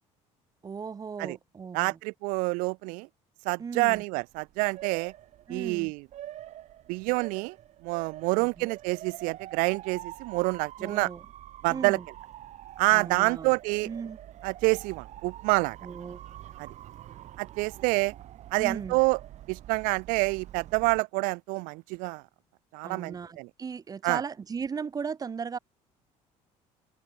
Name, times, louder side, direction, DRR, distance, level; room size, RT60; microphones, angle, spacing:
voice 1, 0.6-2.0 3.6-4.0 5.5-5.9 8.4-8.7 10.8-11.3 11.7-12.1 12.9-13.6 13.8-14.2 15.8-16.2 18.6-19.0 22.8-25.6, right 6 dB, 25° right, 1.1 m, -37 dB
voice 2, 1.7-3.1 3.5-5.1 5.5-6.0 6.9-7.6 7.8-11.1 11.6-12.0 12.8-13.9 14.4-15.8 16.6-16.7 17.4-18.1 18.5-19.2 19.5-22.2 22.7-23.5 24.0-24.2, right 28 dB, 85° right, 0.4 m, -27 dB
Motor vehicle (road) / Siren, 4.2-21.0, right 12 dB, 60° right, 5.6 m, -46 dB
cardioid pair, 110°, 14 cm